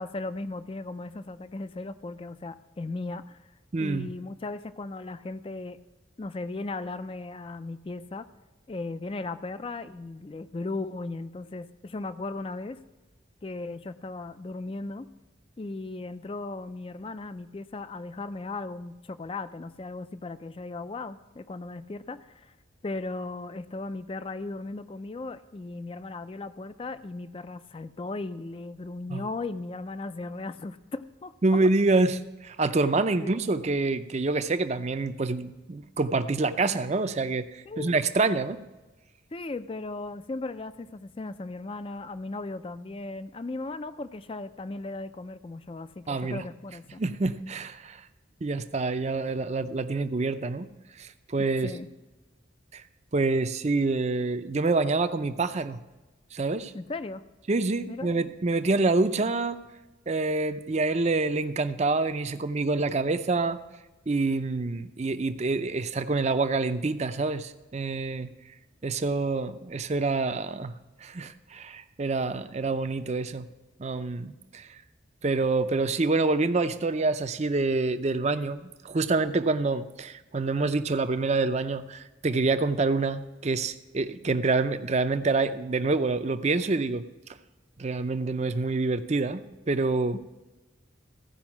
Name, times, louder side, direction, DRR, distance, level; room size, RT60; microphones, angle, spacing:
voice 1, 0.0-3.4 3.8-5.8 6.2-8.3 8.7-12.8 13.4-15.1 15.6-22.5 22.8-31.3 33.2-33.4 37.7-37.9 39.3-47.0 51.6-51.9 56.7-57.2 57.9-58.1, left 2 dB, 25° left, 12 dB, 0.4 m, -37 dB
voice 2, 3.7-4.1 29.1-29.3 31.4-38.6 46.1-46.4 47.0-48.0 48.4-50.7 51.0-51.7 52.7-52.8 53.1-55.8 56.3-56.7 57.5-59.6 60.1-63.6 64.1-68.3 68.8-70.7 71.0-73.5 73.8-74.8 75.2-87.1 87.8-90.3, right 3 dB, 35° right, 11 dB, 0.5 m, -27 dB
15.5 x 5.3 x 6.0 m, 1.1 s
head